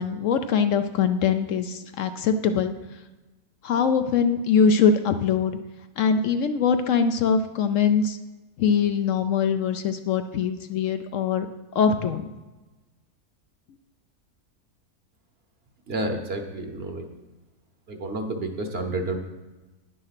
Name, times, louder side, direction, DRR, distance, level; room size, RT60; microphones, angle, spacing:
voice 1, 0.0-2.7 3.6-5.6 6.0-8.2 8.6-11.5 11.7-12.3, left 6 dB, 70° left, 8 dB, 0.9 m, -22 dB
voice 2, 15.9-17.1 17.9-19.2, right 2 dB, 45° right, 4 dB, 1.1 m, -30 dB
10.0 x 6.5 x 5.8 m, 1.2 s
omnidirectional pair, 1.5 m